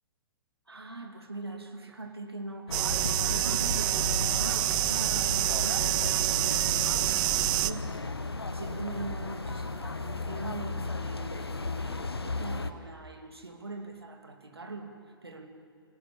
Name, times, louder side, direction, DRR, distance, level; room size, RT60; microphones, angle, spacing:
voice 1, 0.7-15.5, right 2 dB, 85° right, 5 dB, 2.5 m, -42 dB
sound 1, 2.7-12.7, left 3 dB, 85° left, 1.2 m, -35 dB
sound 2, 2.7-7.7, right 18 dB, 30° right, 0.6 m, -27 dB
27.5 x 16.5 x 7.8 m, 2.4 s
figure-of-eight pair, 115°, 13 cm